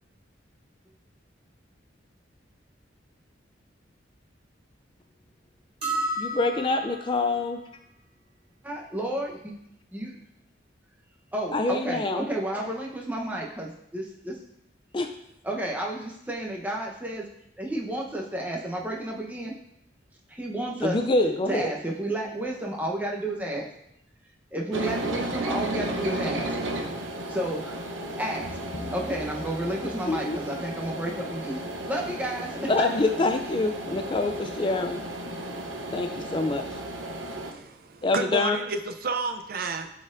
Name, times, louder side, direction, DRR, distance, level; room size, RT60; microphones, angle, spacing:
sound 1, 5.8-7.2, right 1 dB, 30° right, 2.1 m, -31 dB
voice 1, 6.2-7.6 11.5-12.3 14.9-15.1 20.8-21.7 30.1-30.4 32.6-35.0 35.9-36.6 38.0-38.6, left 2 dB, 25° left, 6 dB, 0.3 m, -25 dB
voice 2, 8.6-9.5 9.9-10.2 11.3-14.4 15.4-17.2 17.6-19.5 20.3-21.0 21.5-23.7 24.5-26.6 27.3-27.9 28.1-28.5 28.9-32.9, right 1 dB, 10° right, -1 dB, 0.9 m, -31 dB
sound 2, 24.7-37.5, right 1 dB, 80° right, 0.8 m, -34 dB
sound 3, 28.7-31.5, left 1 dB, 60° left, 0.9 m, -45 dB
voice 3, 37.3-39.9, right 4 dB, 50° right, 7 dB, 0.5 m, -31 dB
12.5 x 4.2 x 2.6 m, 0.78 s
head